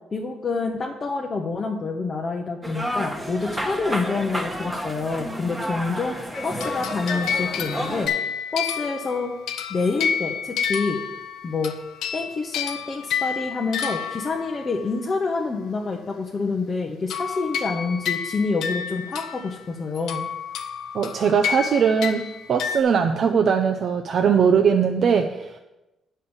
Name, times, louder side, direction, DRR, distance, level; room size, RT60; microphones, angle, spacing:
voice 1, 0.1-8.1 8.5-9.3 9.7-11.0 11.4-11.7 12.1-20.3, left 4 dB, 25° left, 0 dB, 0.7 m, -27 dB
sound 1, 2.6-8.1, equal, 10° right, 1.1 m, -31 dB
sound 2, 6.3-14.9 17.1-19.7 20.0-22.8, left 7 dB, 90° left, 0.8 m, -30 dB
voice 2, 20.9-25.6, right 6 dB, 45° right, 4 dB, 0.5 m, -20 dB
9.4 x 5.5 x 7.0 m, 0.98 s
cardioid pair, 165°, 0 cm